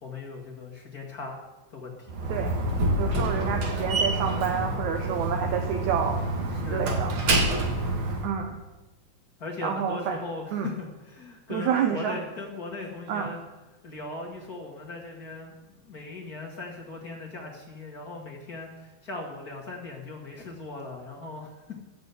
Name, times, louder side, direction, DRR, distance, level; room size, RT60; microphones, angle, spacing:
voice 1, 0.0-1.4 1.7-2.1 6.5-7.1 9.4-13.4 13.8-21.8, left 3 dB, 55° left, -1 dB, 1.0 m, -39 dB
Slam, 2.1-8.3, right 1 dB, 50° right, 1.8 m, -27 dB
voice 2, 3.0-6.2 6.7-7.1 8.2-8.6 9.6-10.2 10.5-10.7 11.5-12.2 13.1-13.3, right 8 dB, 70° right, 4 dB, 1.9 m, -28 dB
13.0 x 6.8 x 8.1 m, 1.1 s
omnidirectional pair, 4.0 m